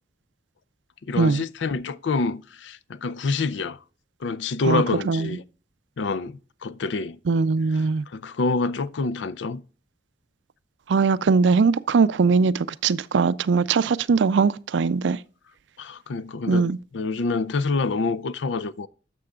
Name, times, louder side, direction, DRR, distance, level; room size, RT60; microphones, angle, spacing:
voice 1, 1.0-3.8 4.2-5.4 6.0-7.2 7.7-7.8 8.1-9.6 15.8-18.9, left 3 dB, 85° left, 0.5 m, -27 dB
voice 2, 4.7-5.3 7.3-8.0 10.9-15.2 16.5-16.8, right 4 dB, 85° right, 0.4 m, -21 dB
11.5 x 6.9 x 2.4 m
head